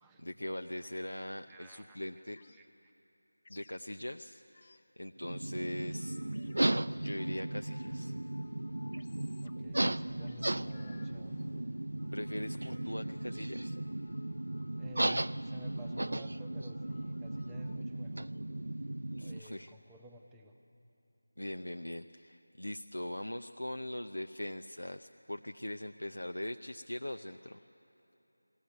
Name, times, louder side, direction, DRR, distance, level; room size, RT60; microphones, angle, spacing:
voice 1, 0.2-2.4 3.5-6.2 6.9-8.1 12.1-13.8 19.2-19.7 21.4-27.6, left 1 dB, 85° left, 6 dB, 0.6 m, -41 dB
voice 2, 1.5-2.9 9.4-11.4 14.8-18.3 19.2-20.5, equal, 5° right, 2 dB, 0.9 m, -54 dB
sound 1, 2.3-2.7 3.4-3.8 4.5-4.9 5.9-9.7 10.2-11.3 12.0-17.8, left 3 dB, 35° left, 0.5 m, -59 dB
sound 2, 5.2-19.4, right 1 dB, 70° right, 0.4 m, -36 dB
sound 3, 10.3-13.8, left 3 dB, 10° left, 1.3 m, -62 dB
21.0 x 16.5 x 9.4 m, 3.0 s
figure-of-eight pair, 170°, 0 cm